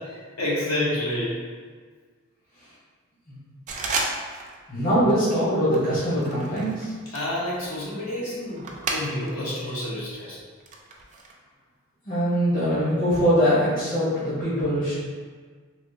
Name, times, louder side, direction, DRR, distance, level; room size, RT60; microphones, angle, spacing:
voice 1, 0.0-1.4 7.1-10.4, left 1 dB, 85° left, -7 dB, 1.1 m, -29 dB
sound 1, 3.7-4.6 4.9-5.2 5.7-9.5 9.8-11.3, right 3 dB, 35° right, 0.3 m, -33 dB
voice 2, 4.7-6.9 12.1-15.0, equal, 40° left, -9 dB, 0.8 m, -22 dB
3.4 x 2.5 x 2.7 m, 1.5 s
head